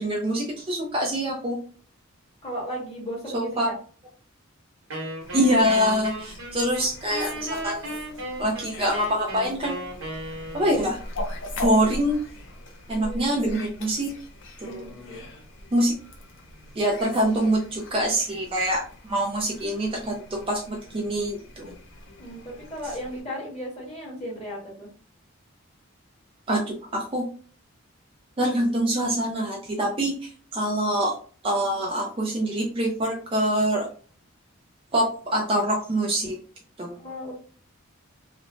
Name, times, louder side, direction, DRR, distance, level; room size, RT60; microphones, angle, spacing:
voice 1, 0.0-1.6 3.3-3.7 5.3-8.0 8.4-9.8 10.5-11.0 11.6-12.2 12.9-14.1 14.6-14.9 15.7-15.9 16.8-21.7 26.5-27.2 28.4-30.1 30.5-31.1 31.4-33.9 34.9-36.4 36.8-36.9, equal, 25° right, -1 dB, 0.4 m, -25 dB
voice 2, 2.4-3.8 12.9-13.6 14.6-15.2 22.2-24.9 37.0-37.3, equal, 25° left, -6 dB, 1.4 m, -36 dB
Wind instrument woodwind instrument, 4.9-10.9, right 1 dB, 70° right, 1.0 m, -35 dB
Fowl, 5.2-23.2, left 1 dB, 55° left, 0.5 m, -41 dB
2.9 x 2.1 x 2.5 m, 0.43 s
head